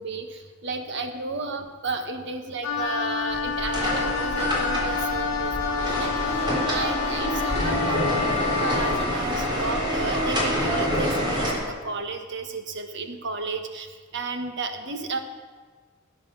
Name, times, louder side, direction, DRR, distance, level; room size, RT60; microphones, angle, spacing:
voice 1, 0.0-15.2, right 3 dB, 60° right, 6 dB, 1.4 m, -33 dB
Wind instrument woodwind instrument, 2.6-9.1, left 6 dB, 75° left, 0.9 m, -29 dB
sound 1, 3.3-11.5, equal, 20° right, 3.6 m, -26 dB
17.5 x 9.7 x 6.3 m, 1.5 s
head